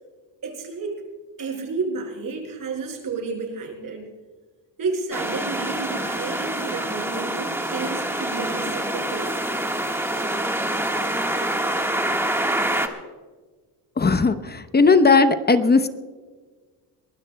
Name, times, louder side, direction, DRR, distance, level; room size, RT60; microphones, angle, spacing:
voice 1, 0.4-1.0 1.4-4.1 4.8-9.3, right 4 dB, 45° right, 2 dB, 5.1 m, -31 dB
sound 1, 5.1-12.9, right 1 dB, 5° right, 1.4 m, -26 dB
voice 2, 14.0-15.9, left 4 dB, 20° left, 10 dB, 0.8 m, -17 dB
23.0 x 19.5 x 2.2 m, 1.4 s
cardioid pair, 135°, 44 cm